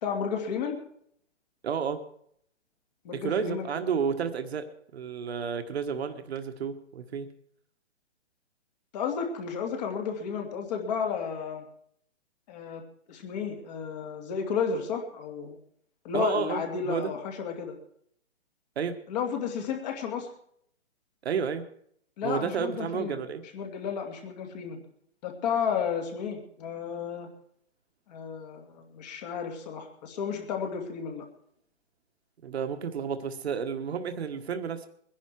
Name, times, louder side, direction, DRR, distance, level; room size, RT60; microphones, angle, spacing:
voice 1, 0.0-0.8 3.0-3.8 8.9-11.7 12.5-12.8 13.1-15.6 16.0-17.8 19.1-20.3 22.2-23.2 23.5-24.8 25.2-27.3 28.1-31.3, left 6 dB, 35° left, 3 dB, 2.6 m, -32 dB
voice 2, 1.6-2.0 3.1-7.3 16.1-17.1 18.8-19.0 21.2-21.7 22.2-23.4 32.4-34.9, right 6 dB, 60° right, 7 dB, 1.5 m, -31 dB
22.0 x 10.5 x 4.7 m, 0.68 s
hypercardioid pair, 145°, 36 cm